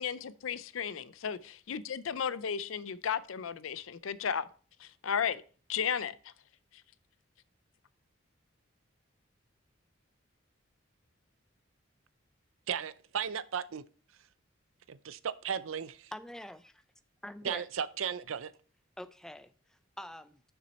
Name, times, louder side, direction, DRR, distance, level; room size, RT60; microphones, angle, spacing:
voice 1, 0.0-4.4 4.8-5.4 5.7-6.3, left 7 dB, 85° left, 0.5 m, -34 dB
voice 2, 12.7-13.8 14.9-16.1 17.4-18.5, right 7 dB, 85° right, 0.5 m, -35 dB
voice 3, 16.1-16.8 17.2-17.7 19.0-20.4, left 1 dB, 5° left, 0.4 m, -45 dB
6.9 x 6.1 x 4.2 m
head